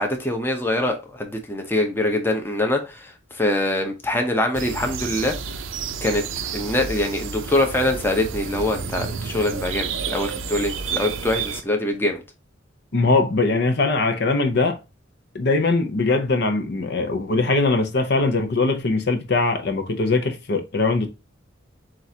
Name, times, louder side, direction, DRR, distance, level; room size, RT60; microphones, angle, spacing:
voice 1, 0.0-5.4 6.0-6.2 6.5-12.2, left 1 dB, 10° left, 0.8 m, -24 dB
sound 1, 4.5-11.6, right 6 dB, 85° right, 0.6 m, -30 dB
voice 2, 12.9-14.8 15.3-21.1, left 3 dB, 60° left, 0.7 m, -21 dB
7.5 x 2.5 x 2.8 m
head